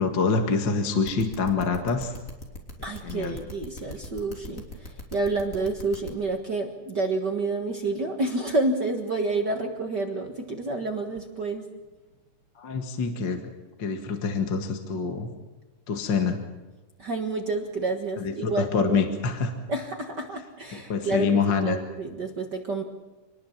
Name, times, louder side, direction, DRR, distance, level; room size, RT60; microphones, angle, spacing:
voice 1, 0.0-2.1 3.0-3.4 12.6-13.4 13.8-15.3 15.9-16.4 18.2-19.5 20.7-21.8, left 5 dB, 40° left, 4 dB, 2.2 m, -26 dB
sound 1, 1.0-6.1, left 2 dB, 25° left, 3.4 m, -40 dB
voice 2, 2.8-11.7 17.0-18.7 19.7-22.8, right 3 dB, 40° right, 3 dB, 1.7 m, -29 dB
26.5 x 20.0 x 7.4 m, 1.2 s
omnidirectional pair, 3.6 m